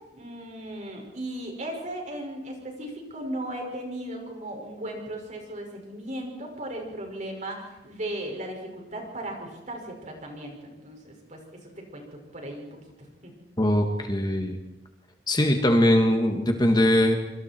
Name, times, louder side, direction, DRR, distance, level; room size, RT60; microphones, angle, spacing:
voice 1, 0.1-11.4 11.8-13.3, right 1 dB, 45° right, 1 dB, 6.2 m, -37 dB
voice 2, 13.6-14.6 15.3-17.1, left 1 dB, 25° left, 4 dB, 2.1 m, -21 dB
26.0 x 25.0 x 4.7 m, 1.0 s
head